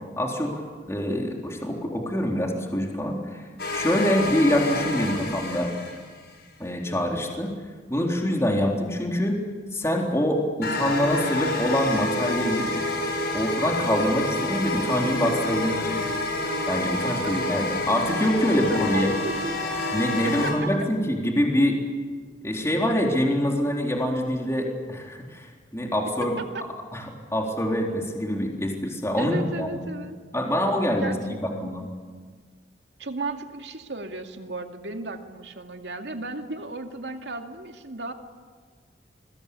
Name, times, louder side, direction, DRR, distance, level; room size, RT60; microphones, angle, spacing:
voice 1, 0.2-0.6 0.9-3.4 3.7-5.7 6.6-7.5 7.9-9.4 9.7-12.7 13.3-16.0 16.7-19.1 19.9-21.8 22.4-25.5 25.7-26.3 26.9-29.8 30.3-31.3 31.6-31.9, equal, 15° left, 0 dB, 3.8 m, -25 dB
sound 1, 3.6-6.3 10.6-20.5, left 2 dB, 65° left, 6.1 m, -28 dB
voice 2, 18.7-19.7 20.2-20.7 26.4-26.7 29.2-30.2 31.0-31.7 33.0-38.1, right 2 dB, 80° right, 4 dB, 2.4 m, -35 dB
28.5 x 22.0 x 8.6 m, 1.5 s
head